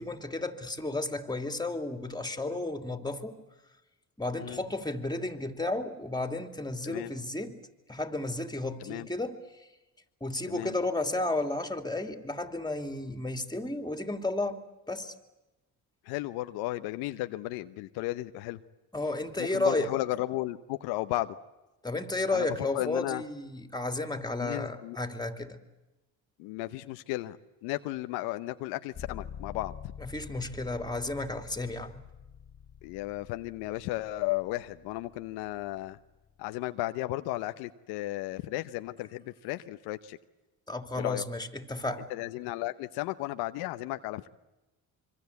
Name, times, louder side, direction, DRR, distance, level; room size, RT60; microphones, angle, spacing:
voice 1, 0.0-3.4 4.2-7.5 7.9-9.4 10.2-14.6 14.9-15.1 18.9-19.9 21.8-25.6 30.0-32.0 40.7-42.1, left 2 dB, 10° left, 8 dB, 2.8 m, -33 dB
voice 2, 6.8-7.1 8.8-9.1 10.5-10.8 16.0-18.6 19.4-21.4 22.3-22.5 22.7-23.2 24.4-25.0 26.4-27.4 27.6-29.7 32.8-36.0 36.4-40.2 40.9-41.2 42.1-44.3, left 17 dB, 85° left, 11 dB, 0.9 m, -34 dB
sound 1, 28.9-36.7, left 8 dB, 45° left, 1.8 m, -47 dB
26.0 x 24.0 x 8.3 m, 1.0 s
supercardioid pair, 60°, 38 cm